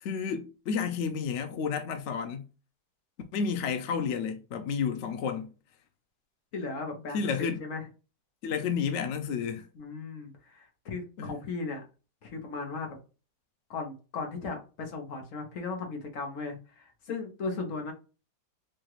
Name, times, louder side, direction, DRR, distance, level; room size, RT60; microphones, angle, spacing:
voice 1, 0.0-2.5 3.3-5.5 7.1-7.6 8.4-9.7 11.2-11.4, left 6 dB, 80° left, 0.6 m, -31 dB
voice 2, 6.5-7.8 9.7-11.8 12.2-13.0 13.7-17.9, left 4 dB, 55° left, 1.2 m, -37 dB
4.8 x 2.4 x 3.0 m
omnidirectional pair, 1.9 m